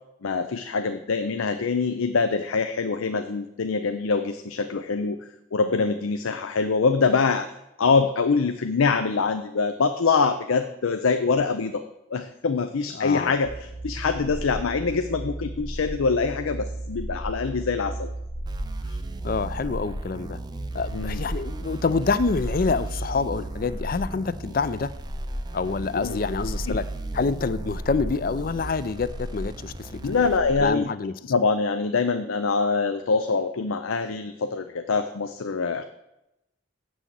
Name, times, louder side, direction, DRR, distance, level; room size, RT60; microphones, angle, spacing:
voice 1, 0.2-5.2 5.5-7.5 7.8-11.8 12.1-18.1 18.9-19.0 20.9-21.2 25.9-26.2 26.7-26.8 30.0-30.9 31.3-35.8, left 4 dB, 90° left, 9 dB, 0.6 m, -24 dB
voice 2, 13.0-13.3 19.2-20.4 20.7-24.9 25.5-26.8 27.1-30.3 30.6-31.1, left 4 dB, 45° left, 15 dB, 0.4 m, -27 dB
sound 1, 13.4-30.6, right 1 dB, 70° left, 2.1 m, -36 dB
sound 2, 18.5-30.4, right 2 dB, 20° right, 0.4 m, -37 dB
8.1 x 6.2 x 7.5 m, 0.87 s
head